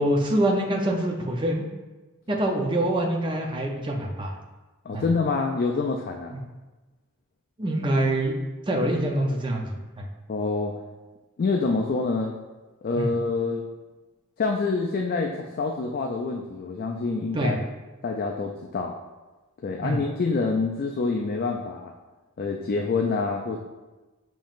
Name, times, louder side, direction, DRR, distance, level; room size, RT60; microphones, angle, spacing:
voice 1, 0.0-1.6 2.3-4.3 4.9-5.0 6.3-6.4 7.6-8.4 8.7-10.1 13.0-13.1 17.3-17.6 19.8-20.0, right 1 dB, 20° right, 0 dB, 0.5 m, -25 dB
voice 2, 4.9-6.4 10.3-10.7 11.4-12.3 12.8-13.6 14.4-17.6 18.0-18.9 19.6-21.9 22.4-23.6, left 4 dB, 40° left, 1 dB, 0.3 m, -26 dB
7.1 x 3.0 x 2.4 m, 1.2 s
head